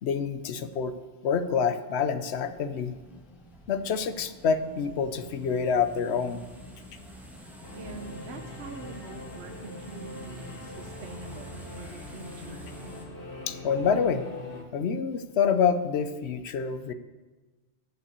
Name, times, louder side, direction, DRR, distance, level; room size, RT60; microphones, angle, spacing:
voice 1, 0.0-0.9 1.2-3.0 3.7-6.4 13.5-14.2 14.7-16.9, left 6 dB, 70° left, 11 dB, 1.0 m, -27 dB
sound 1, 2.4-13.1, equal, ahead, 1.5 m, -47 dB
Singing / Musical instrument, 7.6-14.6, left 2 dB, 50° left, 1.5 m, -42 dB
voice 2, 7.7-12.7, right 4 dB, 65° right, 5 dB, 1.0 m, -44 dB
9.2 x 5.8 x 8.2 m, 1.3 s
omnidirectional pair, 1.2 m